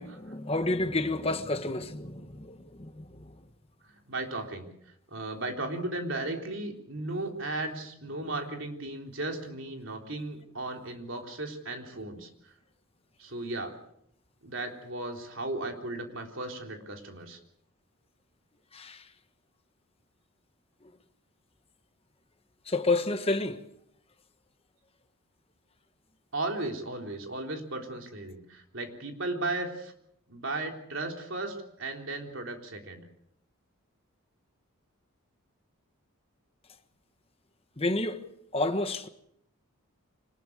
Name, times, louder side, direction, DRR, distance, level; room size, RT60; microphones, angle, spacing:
voice 1, 0.0-3.4 18.7-19.1 22.7-23.6 37.8-38.2 38.5-39.1, left 2 dB, 25° left, 1.3 m, -30 dB
voice 2, 3.8-4.7 5.1-12.5 13.2-13.7 14.4-17.4 26.3-29.9 30.3-33.1, right 2 dB, 60° right, 3.6 m, -36 dB
25.0 x 19.5 x 6.6 m
head